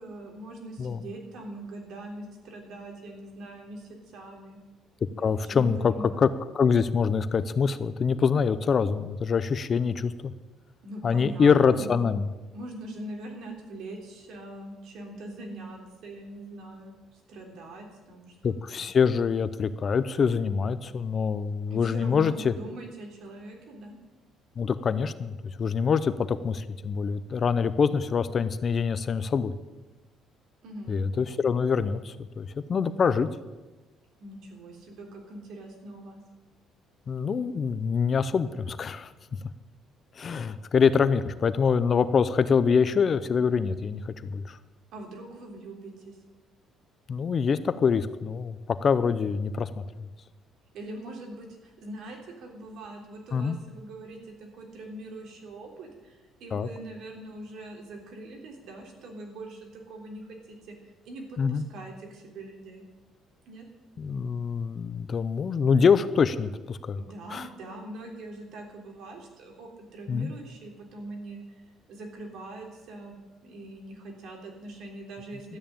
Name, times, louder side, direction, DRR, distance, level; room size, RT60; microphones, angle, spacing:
voice 1, 0.0-4.6 5.1-6.3 10.8-12.2 12.5-18.8 21.7-24.0 30.6-31.0 34.2-36.2 44.9-46.2 50.7-60.8 61.1-62.8 63.5-63.7 66.9-73.1 73.4-75.6, right 1 dB, 65° right, 1 dB, 3.5 m, -42 dB
voice 2, 5.2-6.3 6.5-10.3 11.0-12.3 18.4-22.5 24.6-29.5 30.9-33.3 37.1-39.1 40.2-44.6 47.1-49.8 53.3-53.6 56.5-56.7 61.4-61.6 64.0-67.0 67.3-67.5 70.1-70.3, left 6 dB, 35° left, 13 dB, 0.6 m, -25 dB
13.0 x 9.0 x 8.8 m, 1.2 s
cardioid pair, 150°, 0 cm